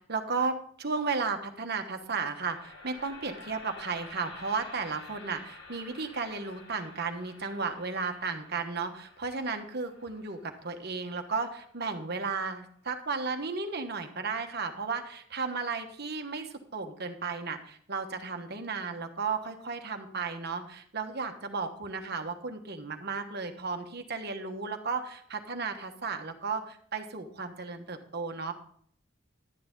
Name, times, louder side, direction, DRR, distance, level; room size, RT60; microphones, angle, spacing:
voice 1, 0.1-28.5, right 4 dB, 50° right, 6 dB, 1.2 m, -34 dB
sound 1, 2.0-12.1, left 2 dB, 70° left, 4.7 m, -51 dB
12.0 x 9.6 x 3.8 m, 0.62 s
head